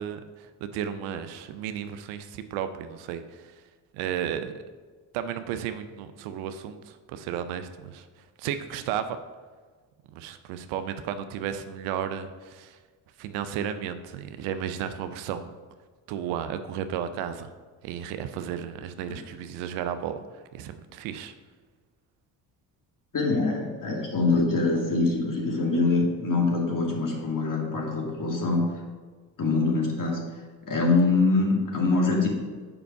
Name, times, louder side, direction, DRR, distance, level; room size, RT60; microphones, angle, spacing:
voice 1, 0.0-3.5 3.9-4.5 5.1-8.1 8.4-9.2 10.1-12.8 13.2-15.6 16.1-17.5 17.8-21.3 24.3-24.4, right 9 dB, 75° right, 10 dB, 0.7 m, -33 dB
voice 2, 23.1-28.7 29.4-30.2 30.7-32.3, left 3 dB, 40° left, -1 dB, 2.2 m, -24 dB
6.9 x 5.5 x 4.7 m, 1.5 s
hypercardioid pair, 50°, 49 cm